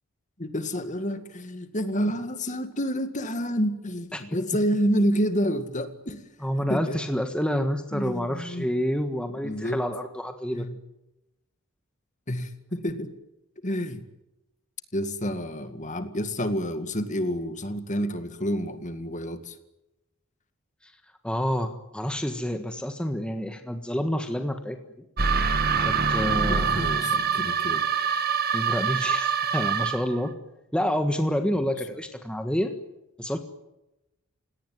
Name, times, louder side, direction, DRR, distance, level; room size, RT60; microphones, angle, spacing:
voice 1, 0.4-6.2 6.7-7.0 7.9-8.7 9.4-9.8 10.5-10.7 12.3-13.1 13.6-14.0 14.9-19.6 26.5-27.8, equal, 35° left, 10 dB, 2.1 m, -29 dB
voice 2, 6.4-10.7 20.8-20.9 21.2-24.8 25.8-26.8 28.5-30.3 30.7-32.7 33.2-33.4, equal, 5° left, 6 dB, 1.5 m, -28 dB
sound 1, 25.2-30.2, right 6 dB, 45° right, 1.9 m, -25 dB
29.5 x 18.0 x 9.4 m, 0.94 s
head